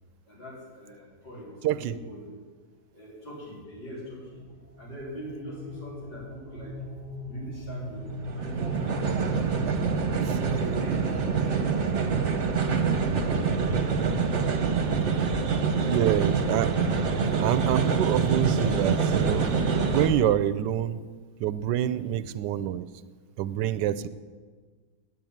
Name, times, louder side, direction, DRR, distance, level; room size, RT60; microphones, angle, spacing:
voice 1, 0.2-2.3 2.9-4.4 4.8-6.8 7.3-10.2 10.5-12.0 12.3-14.1 21.8-22.1, equal, 90° left, -6 dB, 4.7 m, -43 dB
voice 2, 1.6-2.0 10.2-10.5 15.9-16.7 17.4-19.5 19.9-21.0 21.4-22.8 23.4-24.1, right 11 dB, 85° right, 13 dB, 1.2 m, -26 dB
sound 1, 3.6-18.5, left 1 dB, 30° left, 2.5 m, -44 dB
sound 2, 8.0-20.1, right 5 dB, 45° right, 1.3 m, -26 dB
9.5 x 8.7 x 9.2 m, 1.5 s
omnidirectional pair, 1.8 m